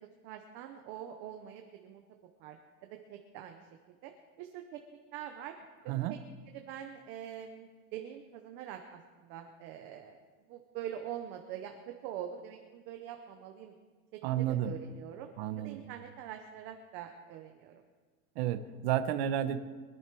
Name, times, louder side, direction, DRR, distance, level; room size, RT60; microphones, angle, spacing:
voice 1, 0.2-2.0 2.4-2.6 3.1-3.7 4.0-4.1 4.4-4.8 5.1-5.5 5.8-6.2 6.5-10.2 10.5-13.8 14.3-17.8, right 10 dB, 25° right, 5 dB, 0.6 m, -44 dB
voice 2, 5.9-6.2 14.2-14.7 15.4-15.8 18.4-19.6, right 11 dB, 45° right, 9 dB, 1.0 m, -31 dB
23.5 x 11.0 x 4.6 m, 1.5 s
supercardioid pair, 180°, 45 cm